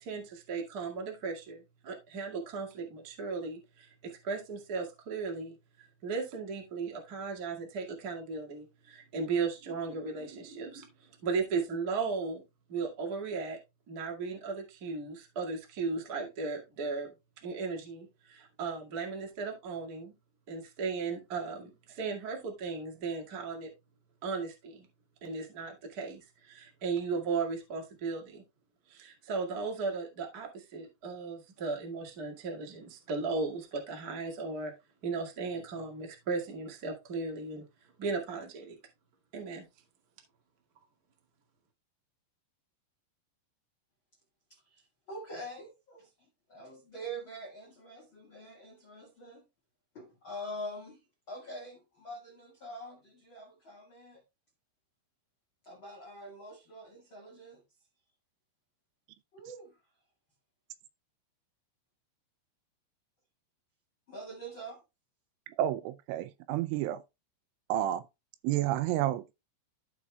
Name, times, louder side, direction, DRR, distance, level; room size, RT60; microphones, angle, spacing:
voice 1, 0.0-12.4 12.7-13.6 13.9-17.1 17.4-20.1 20.5-23.7 24.2-24.9 25.2-28.4 28.9-34.7 35.0-37.6 38.0-38.8 39.3-39.7, right 4 dB, 70° right, 0.9 m, -36 dB
voice 2, 44.7-46.1 46.5-49.4 49.9-51.0 51.3-54.2 55.6-57.6 59.3-59.7 64.1-64.8, right 1 dB, 80° left, 1.1 m, -44 dB
voice 3, 65.6-67.0 67.7-68.0 68.4-69.3, right 13 dB, 85° right, 3.0 m, -30 dB
14.5 x 5.2 x 2.3 m
omnidirectional pair, 5.6 m